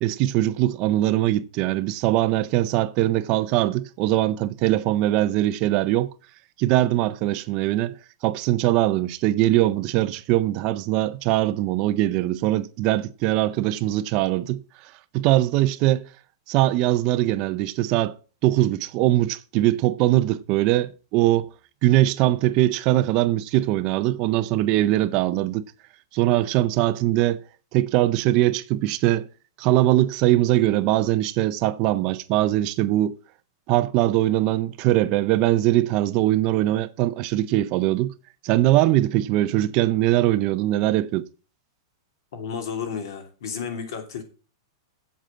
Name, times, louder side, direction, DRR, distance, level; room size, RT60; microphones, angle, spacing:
voice 1, 0.0-6.1 6.6-8.0 8.2-16.1 16.5-18.1 18.4-21.5 21.8-25.6 26.1-27.4 27.7-29.2 29.6-33.1 33.7-38.1 38.4-41.2, right 15 dB, 30° right, 0.5 m, -21 dB
voice 2, 42.3-44.2, left 6 dB, 60° left, 2.8 m, -32 dB
8.0 x 7.7 x 7.3 m
supercardioid pair, 170°, 2 cm